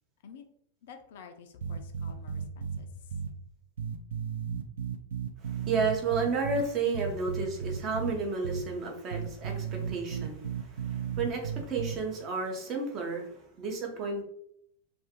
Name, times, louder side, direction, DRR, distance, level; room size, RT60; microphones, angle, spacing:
voice 1, 0.8-3.1, left 6 dB, 55° left, 6 dB, 0.3 m, -50 dB
sound 1, 1.6-2.8 3.1-3.3 3.8-6.6 6.9-8.1 8.4-8.6 9.1-12.0, right 7 dB, 60° right, 0.3 m, -34 dB
voice 2, 5.4-14.2, right 4 dB, 35° right, 2 dB, 0.8 m, -32 dB
2.5 x 2.3 x 3.6 m, 0.70 s
figure-of-eight pair, 90°, 0 cm